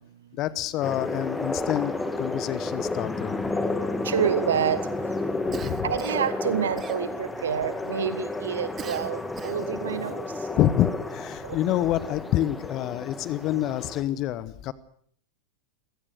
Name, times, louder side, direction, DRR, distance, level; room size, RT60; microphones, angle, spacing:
voice 1, 0.3-3.4 5.5-5.9 10.6-14.7, left 13 dB, 35° left, 18 dB, 1.0 m, -27 dB
sound 1, 0.8-14.0, left 2 dB, 10° left, 2.3 m, -31 dB
voice 2, 4.0-4.8 5.8-10.2 11.4-11.6, right 9 dB, 65° right, 14 dB, 1.2 m, -28 dB
Cough, 5.5-6.3 6.8-7.4 8.8-9.8, right 8 dB, 25° right, 1.0 m, -42 dB
26.0 x 17.5 x 6.7 m, 0.64 s
figure-of-eight pair, 90°, 0 cm